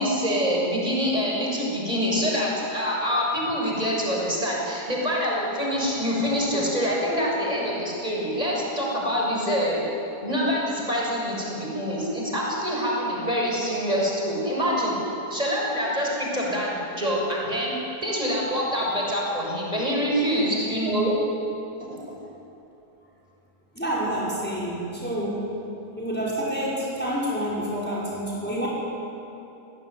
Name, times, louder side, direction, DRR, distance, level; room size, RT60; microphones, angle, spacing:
voice 1, 0.0-9.8 10.2-15.0 15.3-17.7 18.0-21.2, equal, 25° right, -3 dB, 6.9 m, -25 dB
voice 2, 23.7-25.5 26.0-28.7, equal, 5° left, -6 dB, 5.8 m, -28 dB
29.5 x 20.5 x 9.7 m, 2.9 s
omnidirectional pair, 1.7 m